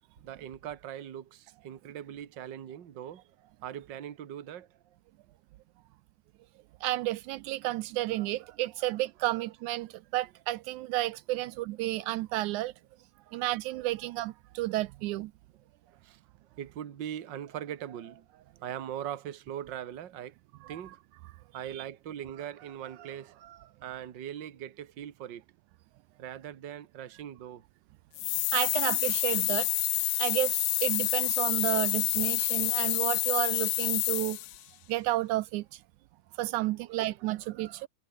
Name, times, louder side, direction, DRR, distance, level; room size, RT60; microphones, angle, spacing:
voice 1, 0.2-4.7 8.2-9.0 9.3-9.4 13.3-13.4 15.9-16.2 16.6-20.3 20.7-21.0 21.5-25.4 26.2-27.6 36.8-37.9, right 10 dB, 45° right, 1.8 m, -41 dB
voice 2, 6.8-12.7 13.3-15.3 20.6-20.8 21.7-21.8 28.5-29.7 30.2-34.4 34.9-35.8 36.4-37.9, right 17 dB, 80° right, 2.0 m, -31 dB
sound 1, 28.2-34.6, left 21 dB, 80° left, 1.8 m, -28 dB
omnidirectional pair, 3.5 m